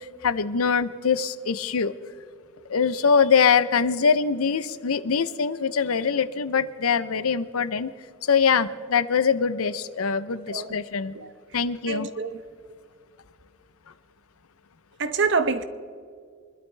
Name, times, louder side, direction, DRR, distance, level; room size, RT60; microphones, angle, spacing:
voice 1, 0.0-1.9 2.7-7.9 8.2-11.1 11.5-12.1, left 6 dB, 80° left, 14 dB, 0.6 m, -23 dB
voice 2, 10.5-10.8 11.1-11.6 11.9-12.5 15.0-15.6, right 4 dB, 55° right, 11 dB, 0.8 m, -27 dB
25.0 x 12.0 x 3.3 m, 2.2 s
head